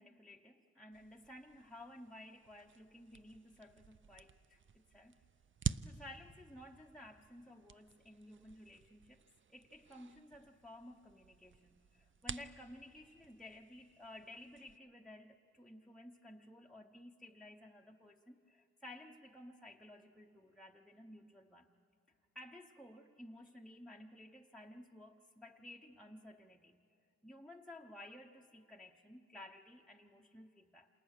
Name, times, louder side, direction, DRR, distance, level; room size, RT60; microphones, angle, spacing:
voice 1, 0.0-5.2 5.6-9.2 9.5-21.8 22.3-26.8 27.2-30.9, left 1 dB, ahead, -1 dB, 0.8 m, -55 dB
sound 1, 0.9-14.8, right 7 dB, 40° right, 0.5 m, -49 dB
28.5 x 27.5 x 6.6 m, 2.7 s
wide cardioid pair, 90°, 31 cm